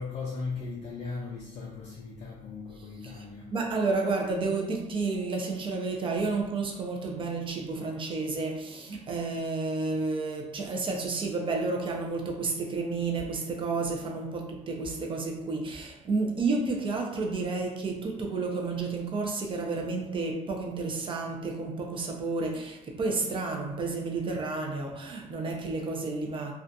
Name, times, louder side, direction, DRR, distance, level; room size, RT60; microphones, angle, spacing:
voice 1, 0.0-3.6, left 4 dB, 40° left, 0.4 m, -37 dB
voice 2, 3.5-26.5, right 3 dB, 30° right, 0.5 m, -31 dB
2.4 x 2.2 x 2.6 m
cardioid pair, 110°, 17 cm